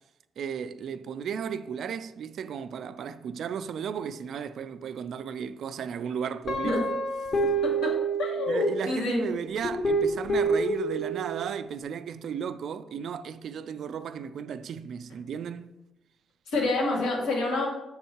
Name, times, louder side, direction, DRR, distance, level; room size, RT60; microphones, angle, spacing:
voice 1, 0.4-6.8 8.5-15.8, right 7 dB, 65° right, 0.3 m, -35 dB
Guitar, 6.5-8.9 9.6-11.6, right 3 dB, 50° left, 1.0 m, -28 dB
voice 2, 8.2-9.2 16.5-17.7, left 2 dB, 90° left, 2.0 m, -27 dB
6.3 x 3.6 x 4.5 m
cardioid pair, 90°, 0 cm